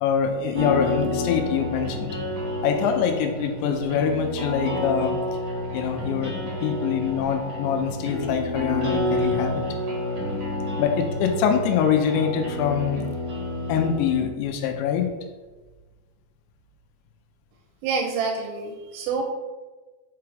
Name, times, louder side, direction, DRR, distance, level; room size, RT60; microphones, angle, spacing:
voice 1, 0.0-2.1 2.6-5.4 5.7-9.6 10.8-13.0 13.7-15.1, left 7 dB, 85° left, 4 dB, 2.9 m, -24 dB
sound 1, 0.5-14.2, left 1 dB, 55° right, 1.3 m, -29 dB
voice 2, 17.8-19.2, right 5 dB, 90° right, 3 dB, 3.0 m, -27 dB
6.9 x 4.7 x 3.3 m, 1.3 s
omnidirectional pair, 5.1 m